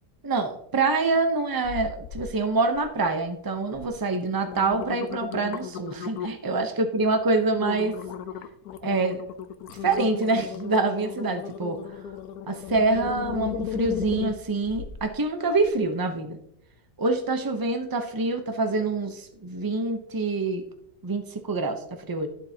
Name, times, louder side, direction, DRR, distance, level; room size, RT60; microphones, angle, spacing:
voice 1, 0.2-8.0 8.8-9.2 9.7-11.8 12.5-16.4 17.0-20.6 21.0-22.3, right 3 dB, 35° right, 6 dB, 0.3 m, -26 dB
sound 1, 1.6-2.3 2.7-3.2 3.7-3.9 4.3-6.5 7.0-7.2 7.6-15.1 15.6-15.7, left 9 dB, 65° left, 1.1 m, -35 dB
12.0 x 7.5 x 2.9 m, 0.71 s
omnidirectional pair, 1.9 m